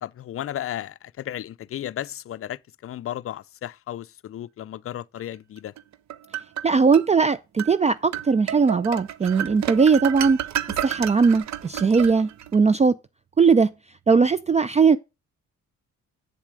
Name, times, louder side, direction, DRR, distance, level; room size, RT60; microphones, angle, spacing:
voice 1, 0.0-5.7, left 12 dB, 50° left, 0.5 m, -34 dB
sound 1, 5.8-7.1 7.6-7.8 8.1-12.6, right 11 dB, 65° right, 0.8 m, -31 dB
voice 2, 6.6-10.4 10.8-13.0 13.4-13.7 14.1-15.0, right 5 dB, 20° right, 0.4 m, -19 dB
8.3 x 7.2 x 4.9 m
cardioid pair, 90°, 30 cm